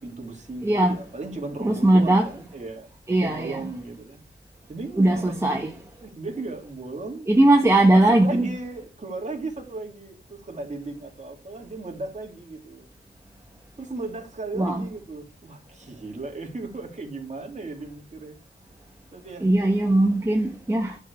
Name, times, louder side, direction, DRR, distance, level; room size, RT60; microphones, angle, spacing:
voice 1, 0.0-3.0 3.2-4.3 4.7-5.7 6.0-7.3 7.9-12.9 13.8-18.4 19.1-19.5, right 3 dB, 40° right, 2.8 m, -36 dB
voice 2, 0.6-0.9 1.6-2.2 3.1-3.6 5.0-5.7 7.3-8.5 14.5-14.8 19.4-21.0, right 1 dB, 15° right, 1.2 m, -19 dB
11.0 x 4.9 x 7.1 m
wide cardioid pair, 120°, 19 cm